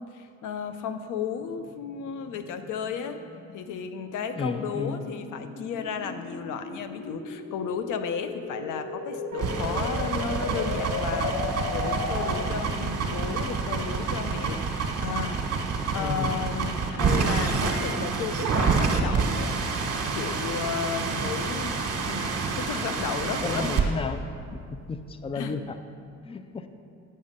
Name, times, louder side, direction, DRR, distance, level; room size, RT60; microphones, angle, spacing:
voice 1, 0.0-3.2 3.5-15.4 15.9-19.6 20.1-21.8 22.1-23.7 25.3-25.6, left 7 dB, 85° left, 9 dB, 0.7 m, -34 dB
sound 1, 1.4-12.7, left 3 dB, 50° left, 1.2 m, -36 dB
voice 2, 4.4-5.0 16.0-16.3 21.1-21.3 23.2-24.2 24.5-24.6 24.9-25.8 26.2-26.7, left 4 dB, 20° left, 10 dB, 0.5 m, -33 dB
sound 2, 9.3-23.8, right 5 dB, 55° right, 1.4 m, -28 dB
10.0 x 5.4 x 6.5 m, 2.4 s
cardioid pair, 90°, 30 cm